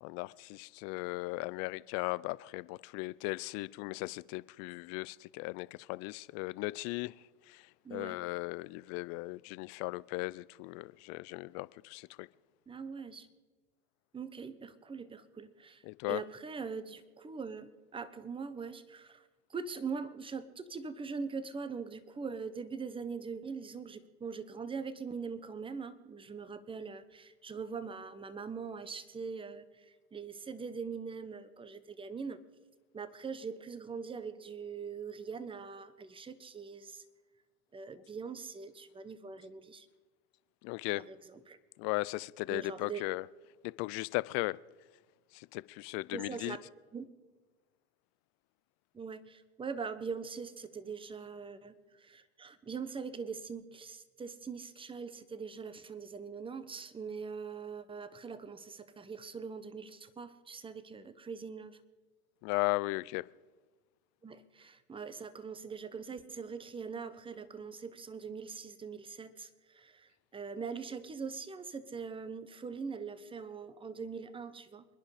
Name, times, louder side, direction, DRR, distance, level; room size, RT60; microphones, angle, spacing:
voice 1, 0.0-7.1 7.5-7.6 7.9-12.3 15.8-16.2 40.6-41.0 41.8-43.3 43.8-44.6 45.3-46.6 62.4-63.3, left 23 dB, 45° left, 0.5 m, -37 dB
voice 2, 7.8-8.2 12.7-13.3 14.1-32.4 32.9-37.0 37.7-39.9 40.9-41.6 42.5-43.0 46.1-47.0 48.9-61.8 64.2-74.9, right 5 dB, 15° right, 1.1 m, -42 dB
28.0 x 10.5 x 5.0 m
supercardioid pair, 120°, 39 cm